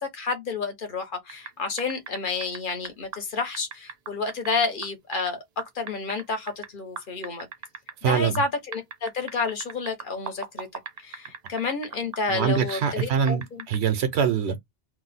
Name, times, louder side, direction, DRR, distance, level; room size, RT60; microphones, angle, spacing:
voice 1, 0.0-5.4 5.7-7.5 8.0-10.7 11.0-13.6, left 4 dB, 55° left, 1.0 m, -30 dB
sound 1, 1.3-1.5 1.8-5.3 5.6-6.7 7.0-8.4 8.7-13.0 13.3-13.8, right 7 dB, 50° right, 0.6 m, -37 dB
voice 2, 8.0-8.4 12.3-14.6, right 7 dB, 90° right, 1.0 m, -24 dB
2.7 x 2.0 x 4.0 m
omnidirectional pair, 1.1 m